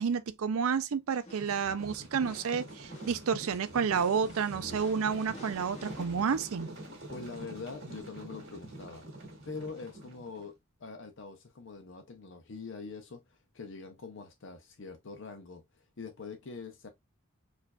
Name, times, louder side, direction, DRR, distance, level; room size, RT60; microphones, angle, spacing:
voice 1, 0.0-6.7, right 6 dB, 75° right, 0.4 m, -30 dB
sound 1, 1.1-6.9, left 1 dB, 30° left, 0.9 m, -51 dB
sound 2, 1.4-10.5, right 1 dB, 55° right, 1.9 m, -46 dB
voice 2, 7.1-9.1 9.5-16.9, left 4 dB, 55° left, 0.6 m, -44 dB
4.6 x 2.5 x 2.2 m
head